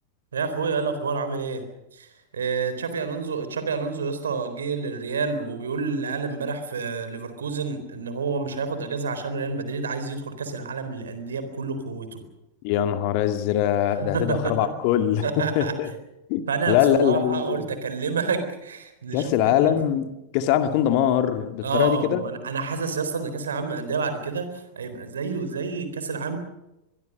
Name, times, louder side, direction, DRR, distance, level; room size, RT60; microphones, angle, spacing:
voice 1, 0.3-1.6 1.9-12.2 13.9-14.7 15.2-15.8 16.5-19.8 21.6-26.4, right 4 dB, 70° right, 3.9 m, -29 dB
voice 2, 12.6-15.9 16.3-17.6 19.1-20.1 20.3-22.2, left 10 dB, 45° left, 2.0 m, -22 dB
23.5 x 23.0 x 6.6 m
figure-of-eight pair, 90°, 0 cm